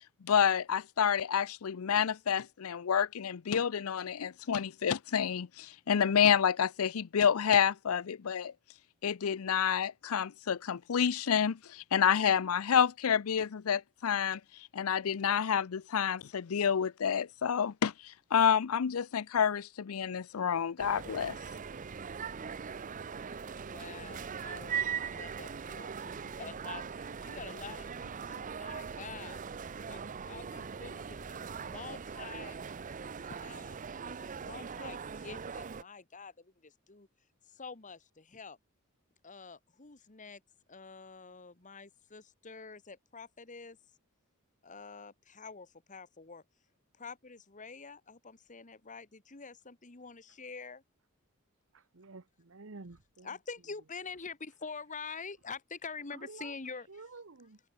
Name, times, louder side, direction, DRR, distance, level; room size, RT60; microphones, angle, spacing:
voice 1, 0.2-8.5 9.0-14.4 14.7-17.9 18.3-21.3, left 7 dB, 85° left, 0.5 m, -29 dB
sound 1, 20.8-35.8, right 6 dB, 35° right, 0.5 m, -40 dB
voice 2, 23.6-29.4 29.9-32.6 33.3-37.1 37.5-38.6 39.2-40.4 40.7-43.8 44.6-46.4 47.0-50.8 53.2-56.9, left 5 dB, 35° left, 1.5 m, -47 dB
voice 3, 51.7-53.4 56.1-56.5 56.9-57.6, right 3 dB, 65° right, 1.1 m, -50 dB
open air
head